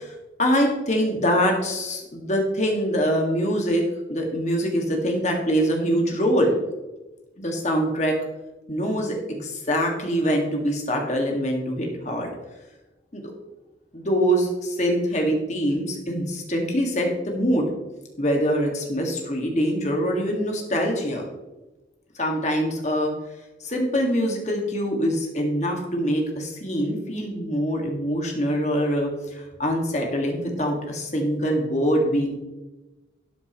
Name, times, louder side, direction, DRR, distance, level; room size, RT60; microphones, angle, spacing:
voice 1, 0.0-3.8 4.1-6.5 7.4-8.1 8.7-12.3 13.1-13.2 13.9-17.7 18.2-21.2 22.2-23.1 23.6-32.4, equal, 40° left, 1 dB, 1.9 m, -24 dB
12.5 x 8.1 x 3.1 m, 1.1 s
head